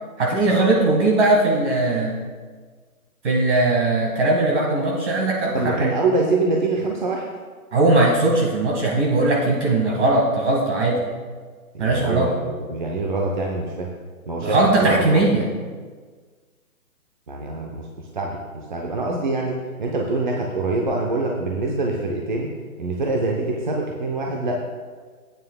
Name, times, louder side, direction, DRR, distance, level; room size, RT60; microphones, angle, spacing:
voice 1, 0.2-2.2 3.2-5.9 7.7-11.0 11.8-12.3 14.4-15.4, right 2 dB, 50° right, -2 dB, 1.9 m, -19 dB
voice 2, 5.5-7.3 11.7-13.9 14.3-15.2 17.3-22.5 22.8-24.5, right 2 dB, 30° right, 0 dB, 0.6 m, -25 dB
13.0 x 9.1 x 2.3 m, 1.5 s
hypercardioid pair, 160°, 45 cm